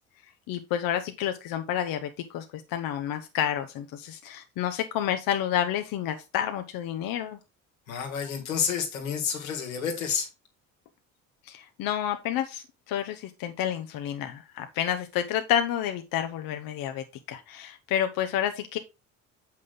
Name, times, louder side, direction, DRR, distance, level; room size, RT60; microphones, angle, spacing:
voice 1, 0.5-7.4 11.5-18.8, left 10 dB, 55° left, 0.9 m, -30 dB
voice 2, 7.9-10.3, left 7 dB, 85° left, 2.0 m, -29 dB
7.6 x 5.7 x 3.8 m
hypercardioid pair, 55°, 40 cm